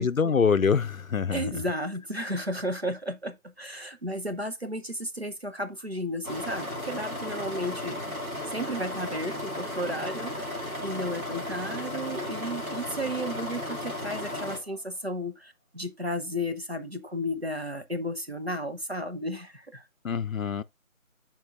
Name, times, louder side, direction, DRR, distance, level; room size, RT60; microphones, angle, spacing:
voice 1, 0.0-1.4 20.0-20.6, left 6 dB, 70° left, 0.5 m, -25 dB
voice 2, 1.3-8.0 8.4-19.9, equal, 45° right, 0.9 m, -33 dB
sound 1, 6.2-14.6, left 1 dB, 75° right, 2.4 m, -35 dB
Laughter, 13.0-15.4, left 2 dB, 10° right, 3.7 m, -50 dB
11.5 x 4.4 x 2.5 m
figure-of-eight pair, 175°, 42 cm